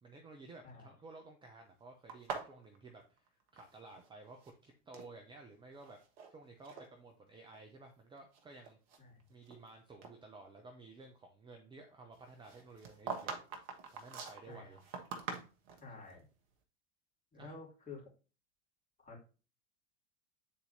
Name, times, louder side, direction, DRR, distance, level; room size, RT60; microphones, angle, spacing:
voice 1, 0.0-6.0 6.3-8.8 9.3-13.4 13.9-14.8 16.0-16.2 17.4-17.5, right 3 dB, 15° right, 3 dB, 0.7 m, -54 dB
sound 1, 2.1-4.1 4.3-5.1 5.8-6.3 6.6-6.9 7.5-7.6 8.2-9.7 10.0-10.2 12.4-15.9, right 5 dB, 50° right, 1.2 m, -44 dB
voice 2, 14.5-14.8 15.8-16.3 17.3-18.1 19.0-19.2, left 3 dB, 20° left, -4 dB, 2.6 m, -51 dB
8.5 x 4.0 x 2.8 m, 0.34 s
figure-of-eight pair, 80°, 37 cm